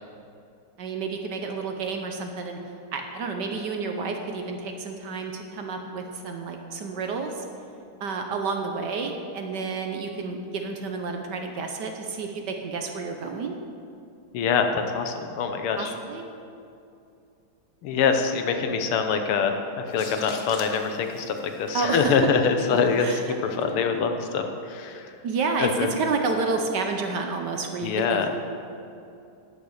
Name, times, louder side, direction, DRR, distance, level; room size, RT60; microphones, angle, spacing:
voice 1, 0.8-2.6 2.9-7.4 8.0-13.6 15.8-16.2 21.7-22.1 23.0-23.8 25.2-28.3, right 4 dB, 60° right, 4 dB, 1.3 m, -30 dB
voice 2, 14.3-15.9 17.8-25.1 25.6-25.9 27.8-28.3, left 6 dB, 80° left, 6 dB, 1.8 m, -24 dB
sound 1, 19.9-23.7, left 4 dB, 50° left, 0.9 m, -44 dB
10.5 x 8.6 x 6.4 m, 2.5 s
omnidirectional pair, 2.4 m